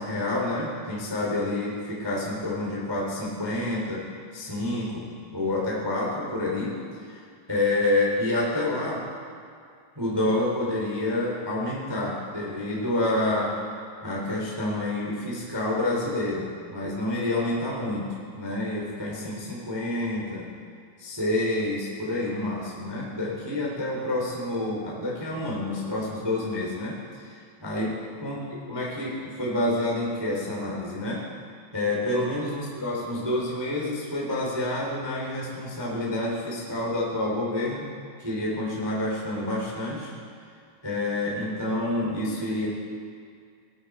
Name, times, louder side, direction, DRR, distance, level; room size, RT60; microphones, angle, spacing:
voice 1, 0.0-4.1 4.3-6.8 7.1-9.1 9.9-13.5 14.0-20.5 21.0-28.4 28.7-31.2 31.7-37.9 38.2-40.1 40.8-42.7, left 1 dB, 10° right, -4 dB, 0.9 m, -28 dB
20.5 x 9.6 x 4.8 m, 2.3 s
omnidirectional pair, 5.9 m